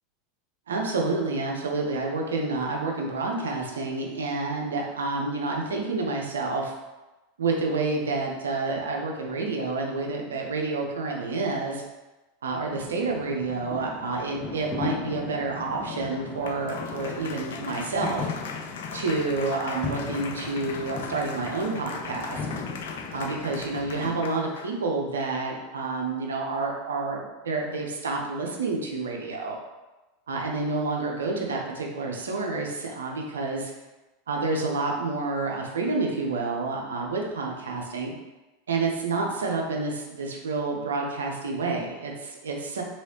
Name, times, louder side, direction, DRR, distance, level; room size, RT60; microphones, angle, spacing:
voice 1, 0.7-6.7 7.4-11.8 12.4-18.3 18.9-22.5 23.1-29.6 30.3-33.7 34.3-38.1 38.7-42.8, right 3 dB, 80° right, 0 dB, 0.6 m, -29 dB
sound 1, 12.7-24.2, left 4 dB, 40° left, 0.7 m, -37 dB
Applause, 15.6-24.8, left 5 dB, 70° left, 0.3 m, -40 dB
3.2 x 3.0 x 2.8 m, 1.1 s
hypercardioid pair, 90°, 0 cm